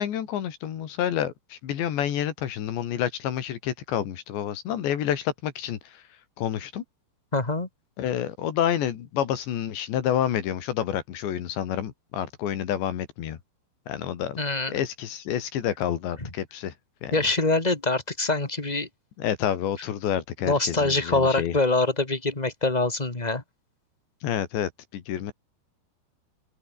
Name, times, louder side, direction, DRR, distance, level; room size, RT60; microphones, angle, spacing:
voice 1, 0.0-5.8 6.4-6.8 8.0-13.4 13.9-14.4 14.7-16.7 17.0-17.2 19.2-21.6 24.2-25.3, left 10 dB, 80° left, 4.6 m, -28 dB
voice 2, 7.3-7.7 14.4-14.8 16.2-16.3 17.1-18.9 20.4-23.4, left 2 dB, 15° left, 1.7 m, -24 dB
omnidirectional pair, 5.1 m